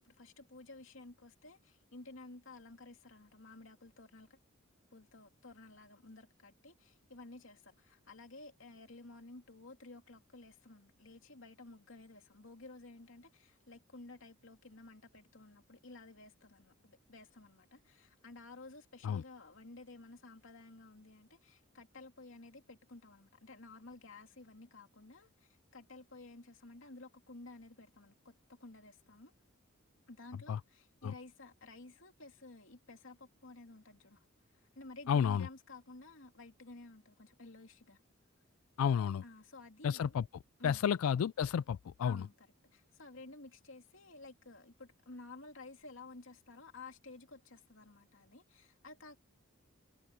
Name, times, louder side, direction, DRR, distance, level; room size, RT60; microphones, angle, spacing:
voice 1, 0.0-4.4 4.9-29.3 30.1-34.2 34.5-38.0 39.2-40.2 40.6-40.8 42.0-49.2, left 2 dB, 65° left, 2.9 m, -53 dB
voice 2, 35.1-35.5 38.8-39.2 39.8-40.2 40.6-42.2, left 7 dB, 90° left, 0.3 m, -31 dB
head